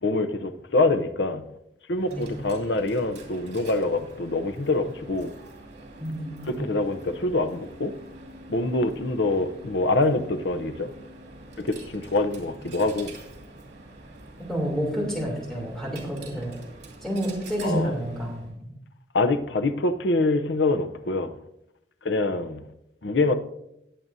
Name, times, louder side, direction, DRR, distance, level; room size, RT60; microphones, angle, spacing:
voice 1, 0.0-1.5 1.9-5.3 6.5-7.9 8.5-10.9 11.6-13.1 17.6-17.9 19.1-21.4 22.0-22.6 23.0-23.3, left 2 dB, 85° left, 0.8 m, -25 dB
Coin (dropping), 1.9-18.6, right 2 dB, 85° right, 2.6 m, -46 dB
voice 2, 2.1-2.4 6.0-6.6 14.5-16.6 17.0-18.7, equal, 5° left, 3.0 m, -29 dB
19.5 x 7.5 x 2.7 m
head